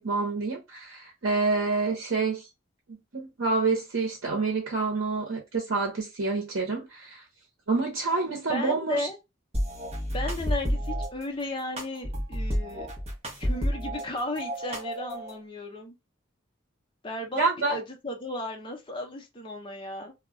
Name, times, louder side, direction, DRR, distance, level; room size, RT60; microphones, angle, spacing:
voice 1, 0.0-2.4 2.9-7.2 7.7-9.1 17.3-17.8, right 3 dB, 75° right, 0.8 m, -28 dB
voice 2, 8.5-9.2 10.1-12.9 13.4-15.9 17.0-20.1, left 1 dB, 25° left, 0.6 m, -35 dB
sound 1, 9.5-11.1 11.8-14.0 14.4-15.3, equal, 30° right, 0.8 m, -30 dB
2.3 x 2.1 x 3.6 m
head